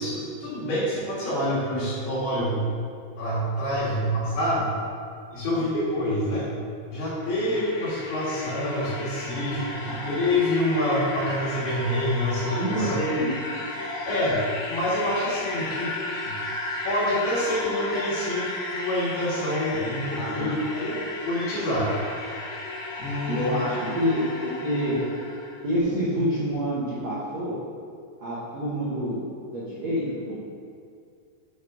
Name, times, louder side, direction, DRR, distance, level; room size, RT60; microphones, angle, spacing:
voice 1, 0.0-2.7 3.2-4.7 5.3-6.5 6.9-13.0 14.1-15.9 16.2-16.4 16.8-20.5 20.7-21.0 21.2-21.9 23.0-23.7, left 1 dB, 50° left, -10 dB, 2.8 m, -27 dB
sound 1, 7.0-25.6, left 2 dB, 80° left, 2.1 m, -34 dB
voice 2, 12.6-13.3 20.1-20.6 23.3-25.1 25.6-27.6 28.2-30.4, equal, 75° right, -9 dB, 1.5 m, -28 dB
7.0 x 4.8 x 4.8 m, 2.3 s
omnidirectional pair, 5.2 m